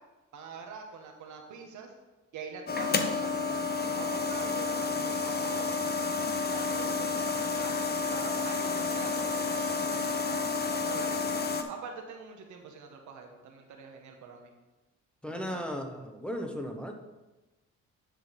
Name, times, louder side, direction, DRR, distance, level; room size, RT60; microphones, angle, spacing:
voice 1, 0.3-1.9 2.3-3.3 3.8-5.7 6.5-10.4 10.8-11.2 11.7-14.5 15.3-15.7, right 5 dB, 75° right, 3 dB, 1.3 m, -44 dB
sound 1, 2.7-11.6, left 4 dB, 30° left, 0.8 m, -30 dB
voice 2, 15.2-16.9, equal, 5° left, 2 dB, 1.0 m, -36 dB
10.0 x 3.9 x 5.3 m, 1.1 s
cardioid pair, 90°, 30 cm